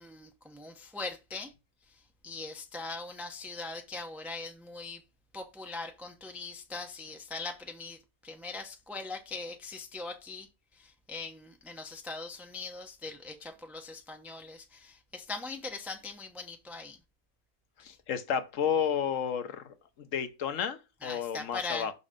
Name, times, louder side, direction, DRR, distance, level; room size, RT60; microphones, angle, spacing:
voice 1, 0.0-1.5 1.9-5.0 5.3-10.5 10.7-17.0 17.8-18.0 21.0-21.9, left 3 dB, ahead, 0.5 m, -41 dB
voice 2, 17.8-21.9, left 8 dB, 60° left, 1.1 m, -32 dB
6.2 x 4.1 x 5.0 m
omnidirectional pair, 1.6 m